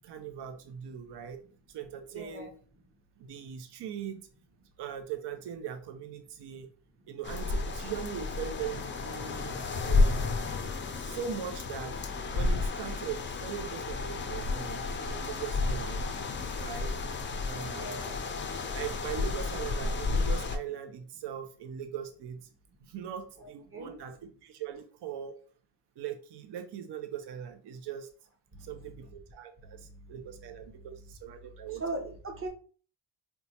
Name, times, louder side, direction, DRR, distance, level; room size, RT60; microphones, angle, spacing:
voice 1, 0.0-1.4 1.7-2.5 3.2-4.3 4.8-6.7 7.1-10.2 10.9-12.0 12.3-16.1 16.6-16.9 17.4-18.0 18.6-22.5 22.9-24.1 24.4-25.3 26.0-28.1 28.6-31.8, right 8 dB, 65° right, 7 dB, 0.5 m, -40 dB
voice 2, 2.1-2.5 7.0-7.1 17.7-18.2 23.4-23.9 28.5-29.1 29.6-30.5 30.7-31.1 31.8-32.5, right 2 dB, 30° right, 3 dB, 0.8 m, -41 dB
sound 1, 7.2-20.6, left 3 dB, 30° left, 0.4 m, -31 dB
4.3 x 2.1 x 2.8 m, 0.42 s
cardioid pair, 95°, 44 cm